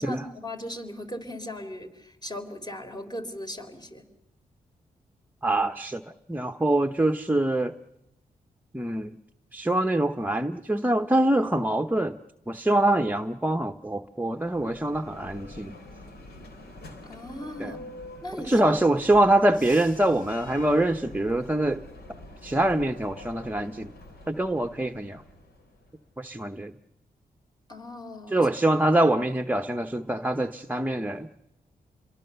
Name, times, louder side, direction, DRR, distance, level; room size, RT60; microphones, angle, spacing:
voice 1, 0.0-4.1 17.0-17.8 18.2-18.6 27.7-28.5, left 1 dB, 25° left, 6 dB, 3.7 m, -38 dB
voice 2, 5.4-7.7 8.7-9.2 9.5-12.1 12.5-15.8 17.6-17.7 18.5-21.8 22.4-23.9 24.3-25.2 26.2-26.7 28.3-31.3, right 1 dB, 10° right, 6 dB, 0.9 m, -24 dB
Bell, 14.2-26.0, left 2 dB, 90° left, 4.0 m, -46 dB
sound 1, 19.5-21.9 23.5-23.6 24.8-24.9 26.6-26.7 27.1-27.3 27.8-29.9 30.2-30.5 30.9-31.3, left 2 dB, 60° left, 3.9 m, -54 dB
28.0 x 22.5 x 6.9 m, 0.89 s
cardioid pair, 55°, 16 cm